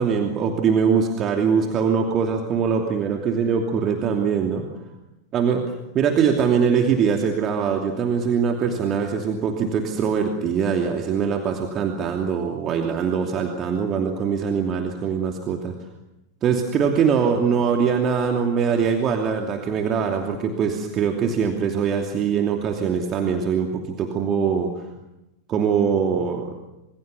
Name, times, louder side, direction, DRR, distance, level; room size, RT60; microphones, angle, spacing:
voice 1, 0.0-4.7 5.3-5.6 5.9-15.7 16.4-24.8 25.5-26.6, right 6 dB, 30° right, 3 dB, 2.8 m, -22 dB
27.0 x 25.0 x 7.1 m, 0.94 s
figure-of-eight pair, 90°, 0 cm